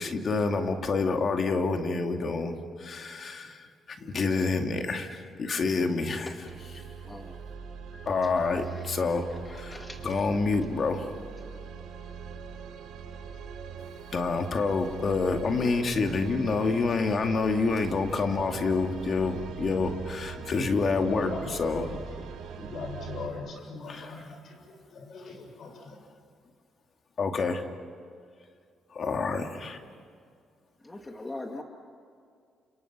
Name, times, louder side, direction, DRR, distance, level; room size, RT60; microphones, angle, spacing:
voice 1, 0.0-6.3 8.1-11.1 14.1-21.3 21.6-21.9 23.9-24.1 27.2-27.6 28.9-29.8, left 4 dB, 50° left, 5 dB, 2.4 m, -28 dB
sound 1, 6.4-23.3, right 7 dB, 85° right, 4.0 m, -42 dB
voice 2, 7.9-10.0 30.8-31.6, left 2 dB, 20° left, 2 dB, 2.0 m, -43 dB
voice 3, 18.6-19.3 20.3-22.1 22.5-26.0, left 2 dB, 65° left, 4 dB, 6.6 m, -41 dB
29.5 x 27.5 x 6.1 m, 2.2 s
cardioid pair, 90°, 0 cm